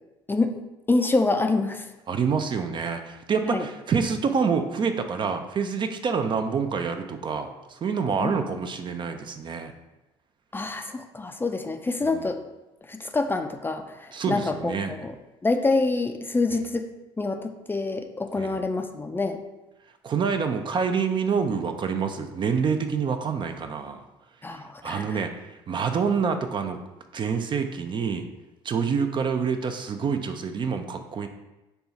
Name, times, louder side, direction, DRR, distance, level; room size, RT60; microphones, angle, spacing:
voice 1, 0.9-1.9 3.4-3.7 8.2-8.6 10.5-12.4 12.9-15.1 15.4-16.9 17.2-19.4 24.4-25.2, left 3 dB, 15° left, 5 dB, 0.4 m, -26 dB
voice 2, 2.1-9.7 14.1-14.9 18.4-18.5 20.0-24.0 24.5-26.8 27.1-28.3 28.6-31.3, right 6 dB, 35° right, 7 dB, 0.5 m, -27 dB
5.4 x 2.3 x 4.0 m, 1.0 s
supercardioid pair, 80°, 13 cm